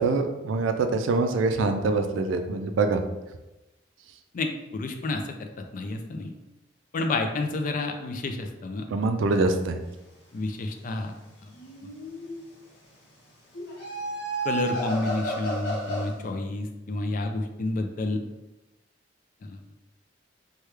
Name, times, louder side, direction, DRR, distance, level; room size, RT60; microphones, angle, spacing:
voice 1, 0.0-3.0 8.9-9.8, right 3 dB, 85° right, 7 dB, 0.4 m, -24 dB
voice 2, 4.3-5.2 5.7-6.3 6.9-8.9 9.4-9.5 10.3-11.1 11.4-11.5 14.4-18.2 19.4-19.6, left 2 dB, 45° left, 4 dB, 0.3 m, -30 dB
sound 1, 11.5-12.5 13.5-16.2, right 2 dB, 65° left, 0.8 m, -32 dB
3.2 x 2.2 x 3.1 m, 1.0 s
head